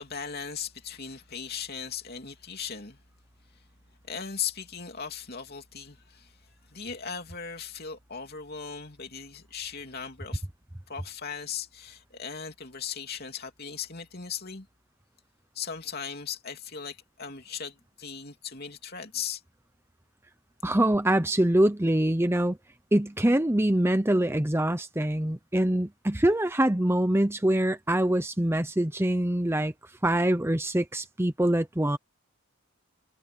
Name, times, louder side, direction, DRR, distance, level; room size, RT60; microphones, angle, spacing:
voice 1, 0.0-3.0 4.1-10.4 10.9-14.7 15.5-19.4, left 7 dB, 45° left, 3.1 m, -38 dB
voice 2, 20.6-22.6 22.9-29.7 30.0-32.0, right 1 dB, 10° right, 0.8 m, -24 dB
head